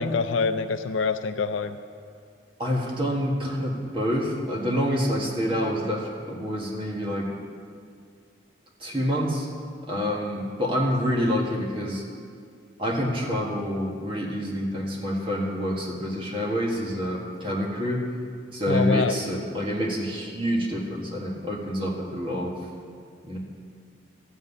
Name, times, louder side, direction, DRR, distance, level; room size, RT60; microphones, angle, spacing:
voice 1, 0.0-1.8 18.7-19.1, left 4 dB, 80° left, 9 dB, 0.5 m, -25 dB
voice 2, 2.6-7.3 8.8-9.5 9.9-12.0 12.8-18.0 18.5-22.6 23.2-23.4, equal, 25° right, -2 dB, 1.6 m, -27 dB
13.0 x 5.5 x 8.3 m, 2.2 s
head